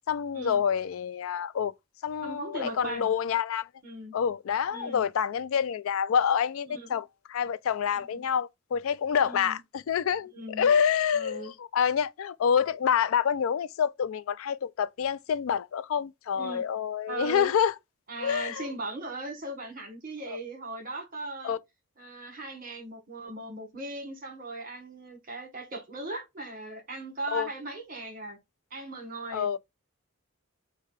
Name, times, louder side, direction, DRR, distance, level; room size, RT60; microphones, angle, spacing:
voice 1, 0.1-1.7 2.0-3.7 4.1-17.7 18.2-18.7 21.4-21.6 27.3-27.5 29.3-29.6, left 7 dB, 75° left, 0.4 m, -27 dB
voice 2, 2.2-3.1 3.8-4.1 4.7-5.0 6.7-7.0 8.1-8.2 9.2-9.6 10.3-10.7 11.1-11.5 16.3-16.7 17.1-17.5 18.1-21.5 22.0-28.4 28.7-29.6, right 2 dB, 45° right, 1.5 m, -38 dB
4.6 x 2.2 x 4.7 m
head